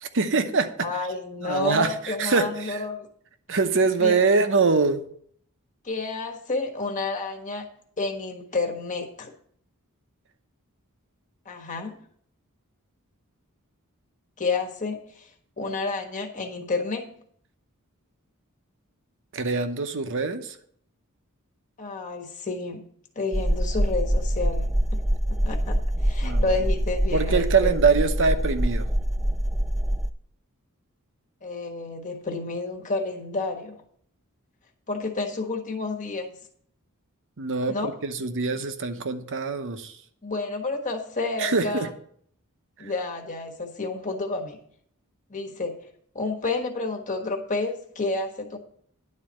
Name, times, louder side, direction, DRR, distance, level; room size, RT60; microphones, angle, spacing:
voice 1, 0.0-0.9 1.4-2.8 3.5-5.0 19.3-20.6 26.2-26.6 27.1-28.9 37.4-39.9 41.4-41.9, right 4 dB, 60° right, 9 dB, 0.9 m, -24 dB
voice 2, 0.8-3.1 4.0-4.2 5.8-7.6 8.0-9.3 11.4-12.0 14.4-15.3 15.6-17.1 21.8-22.9 23.1-25.0 25.4-27.9 31.4-33.8 34.9-36.3 37.7-37.9 40.2-41.9 42.8-44.6 45.3-45.9 46.1-48.6, left 3 dB, 35° left, 2 dB, 1.4 m, -30 dB
sound 1, 23.3-30.1, equal, ahead, 0.3 m, -24 dB
11.0 x 4.1 x 7.6 m, 0.62 s
head